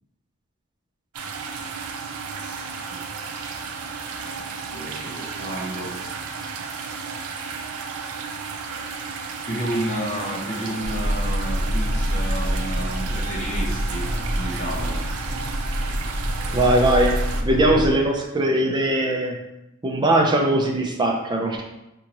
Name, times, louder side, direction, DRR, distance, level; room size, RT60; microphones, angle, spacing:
sound 1, 1.1-17.4, right 5 dB, 85° right, 0.4 m, -33 dB
voice 1, 4.7-6.0 9.5-15.1, right 1 dB, 35° left, -2 dB, 0.7 m, -31 dB
sound 2, 10.8-17.9, equal, 80° left, 0.7 m, -26 dB
voice 2, 16.5-19.4 19.8-21.6, right 1 dB, 20° right, 1 dB, 0.4 m, -20 dB
4.5 x 2.6 x 2.9 m, 0.92 s
head